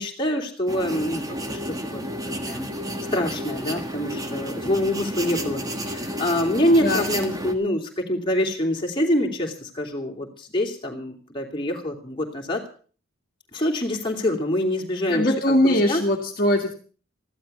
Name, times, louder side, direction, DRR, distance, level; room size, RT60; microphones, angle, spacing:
voice 1, 0.0-1.6 1.9-2.7 3.1-12.6 13.5-16.0, left 1 dB, 25° left, 0 dB, 3.0 m, -25 dB
sound 1, 0.7-7.5, equal, 15° right, 1.6 m, -31 dB
voice 2, 15.1-16.7, left 1 dB, 45° left, 1 dB, 2.0 m, -21 dB
14.5 x 12.0 x 6.8 m, 0.41 s
head